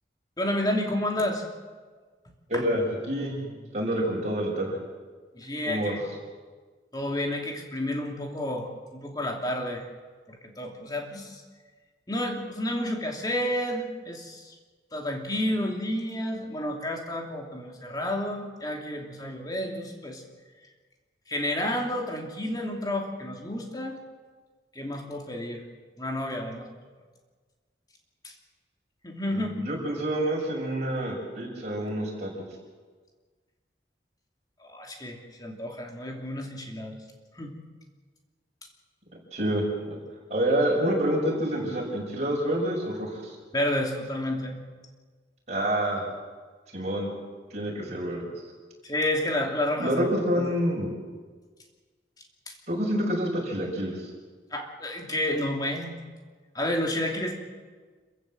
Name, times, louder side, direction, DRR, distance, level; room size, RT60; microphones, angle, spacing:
voice 1, 0.4-1.4 2.5-2.6 5.3-6.0 6.9-9.8 10.3-11.4 12.1-14.5 14.9-20.2 21.3-24.0 24.7-25.6 26.0-26.7 28.2-28.3 29.0-29.5 34.6-37.0 37.4-37.5 43.5-44.6 47.9-48.0 48.8-50.0 50.4-50.5 52.5-52.6 54.5-56.0 56.5-57.3, left 1 dB, 20° left, 2 dB, 2.8 m, -30 dB
voice 2, 2.5-4.8 5.7-5.9 29.3-32.4 39.3-40.0 40.3-43.3 45.5-46.0 46.7-47.1 47.5-48.2 49.8-50.9 52.7-54.1, right 1 dB, 40° right, -3 dB, 6.4 m, -27 dB
27.0 x 15.0 x 7.7 m, 1.4 s
head